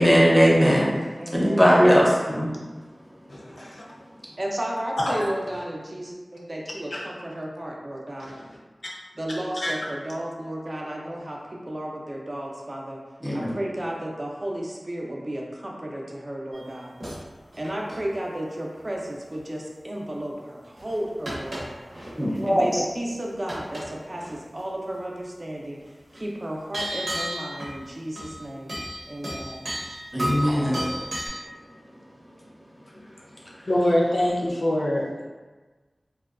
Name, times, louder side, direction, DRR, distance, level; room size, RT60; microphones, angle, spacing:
voice 1, 0.0-0.9 1.3-2.5 13.2-13.5 22.2-22.8 30.1-31.0, equal, 5° left, -4 dB, 0.6 m, -19 dB
voice 2, 1.2-1.8 4.4-8.4 9.1-13.0 13.3-16.9 17.5-21.9 22.4-25.8 26.1-28.7 29.1-29.7, right 1 dB, 45° right, -1 dB, 0.4 m, -33 dB
voice 3, 3.3-3.7 5.0-5.3 6.9-7.0 8.2-8.4 9.6-9.7 33.7-35.3, left 1 dB, 75° left, -4 dB, 0.5 m, -24 dB
sound 1, 16.5-17.2 17.5-18.1 19.3-19.4 20.8-22.4 22.7-23.1 23.5-23.9 24.1-24.4 26.1-26.2 26.7-27.8 28.2-28.4 28.7-31.3, equal, 80° right, 0.7 m, -33 dB
2.6 x 2.2 x 2.4 m, 1.3 s
wide cardioid pair, 55°, 0 cm